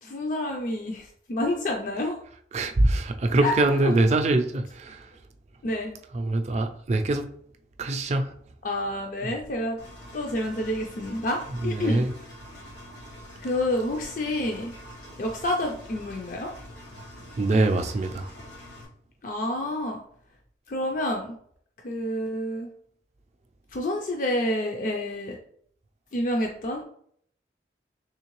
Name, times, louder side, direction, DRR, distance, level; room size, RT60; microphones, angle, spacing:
voice 1, 0.0-2.2 3.4-3.5 3.8-3.9 5.6-5.9 8.6-9.8 10.1-12.0 13.4-14.7 15.2-16.5 19.2-20.0 20.7-21.4 21.8-22.7 23.7-25.4 26.1-26.8, left 1 dB, 50° left, 0.4 m, -28 dB
voice 2, 2.5-5.1 6.1-7.2 7.8-8.3 9.2-9.3 11.6-12.1 17.3-18.3, right 2 dB, 40° right, 0.4 m, -23 dB
Engine, 9.8-18.9, equal, 80° left, 1.3 m, -45 dB
3.6 x 3.1 x 3.0 m
head